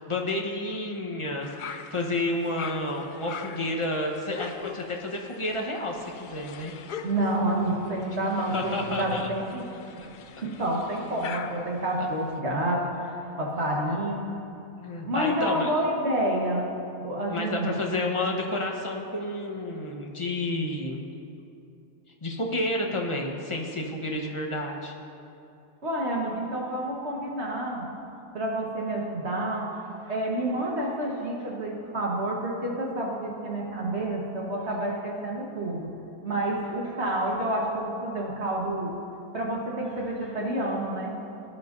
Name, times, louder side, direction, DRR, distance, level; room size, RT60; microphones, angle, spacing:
voice 1, 0.0-6.7 8.5-9.3 12.0-12.1 13.8-14.0 14.8-15.7 17.3-21.0 22.2-24.9, left 1 dB, 25° left, 0 dB, 1.1 m, -30 dB
sound 1, 1.4-12.4, left 6 dB, 85° left, 0.4 m, -43 dB
voice 2, 7.0-9.6 9.9-10.1 10.4-14.4 15.1-16.7 17.0-17.8 25.8-27.9 28.3-29.8 30.1-35.9 36.2-39.0 39.3-41.2, right 1 dB, 50° right, -2 dB, 1.7 m, -29 dB
18.5 x 11.0 x 2.7 m, 2.7 s
omnidirectional pair, 1.5 m